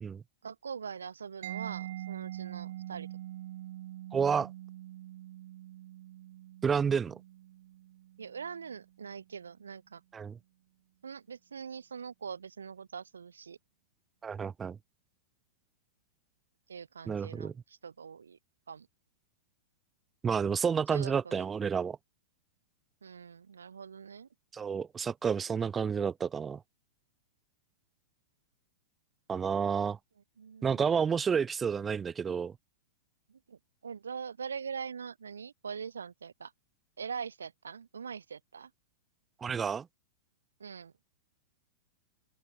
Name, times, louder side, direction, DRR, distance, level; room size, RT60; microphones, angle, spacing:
voice 1, 0.4-3.1 8.2-10.0 11.0-13.6 16.7-18.4 18.7-18.9 20.9-21.5 23.0-24.3 30.4-30.9 33.3-36.5 37.0-38.7 40.6-40.9, right 6 dB, 85° right, 1.4 m, -43 dB
Mallet percussion, 1.4-9.0, right 14 dB, 60° right, 4.6 m, -44 dB
voice 2, 4.1-4.5 6.6-7.2 10.1-10.3 14.2-14.8 17.1-17.5 20.2-22.0 24.5-26.6 29.3-30.0 30.6-32.5 39.4-39.9, right 6 dB, 20° right, 0.5 m, -30 dB
open air
hypercardioid pair, 115°, 0 cm